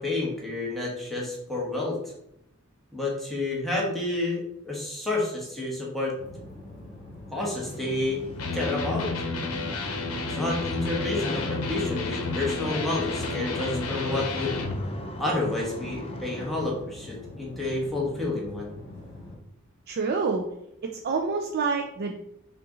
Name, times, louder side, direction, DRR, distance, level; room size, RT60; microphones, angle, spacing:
voice 1, 0.0-2.0 2.9-6.1 7.3-8.2 8.5-9.1 10.3-14.5 15.2-18.7, left 2 dB, ahead, -4 dB, 1.2 m, -29 dB
sound 1, 6.2-19.4, left 2 dB, 65° left, 1.4 m, -44 dB
sound 2, 7.6-16.7, left 1 dB, 25° left, 0.5 m, -40 dB
Electric guitar, 8.4-14.8, left 3 dB, 85° left, 0.8 m, -31 dB
voice 2, 19.9-20.5 20.8-22.2, right 4 dB, 45° right, 2 dB, 0.4 m, -27 dB
5.6 x 2.5 x 3.8 m, 0.78 s
head